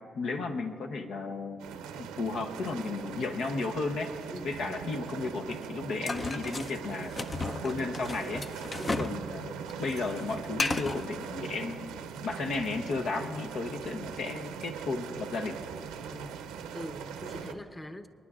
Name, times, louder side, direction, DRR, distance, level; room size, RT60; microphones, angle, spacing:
voice 1, 0.1-1.6 1.9-4.1 4.4-7.1 7.5-8.4 8.9-15.6, left 3 dB, 70° left, 4 dB, 0.8 m, -34 dB
sound 1, 1.6-17.5, right 7 dB, 90° right, 0.7 m, -41 dB
sound 2, 6.1-9.2 9.5-11.1, left 3 dB, 40° left, 0.6 m, -34 dB
voice 2, 16.1-16.4 16.7-18.1, left 1 dB, 20° left, 9 dB, 1.0 m, -42 dB
29.0 x 10.0 x 2.4 m, 2.5 s
hypercardioid pair, 45°, 0 cm